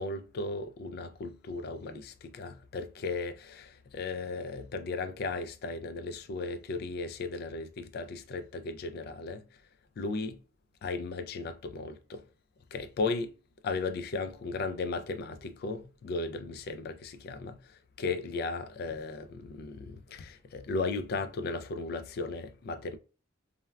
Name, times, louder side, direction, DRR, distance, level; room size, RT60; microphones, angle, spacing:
voice 1, 0.0-9.4 10.0-10.4 10.8-12.2 12.7-13.3 13.6-17.6 18.0-23.0, left 3 dB, 50° left, 0.3 m, -36 dB
3.4 x 2.2 x 2.2 m
head